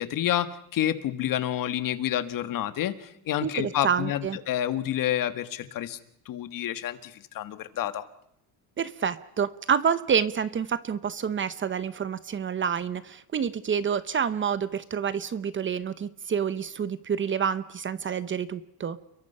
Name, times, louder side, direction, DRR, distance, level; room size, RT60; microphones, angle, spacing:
voice 1, 0.0-6.0 6.2-8.0, left 11 dB, 50° left, 11 dB, 1.6 m, -29 dB
voice 2, 3.4-4.4 8.8-19.0, right 7 dB, 25° right, 14 dB, 0.9 m, -28 dB
29.5 x 22.5 x 5.6 m, 0.79 s
cardioid pair, 140°, 43 cm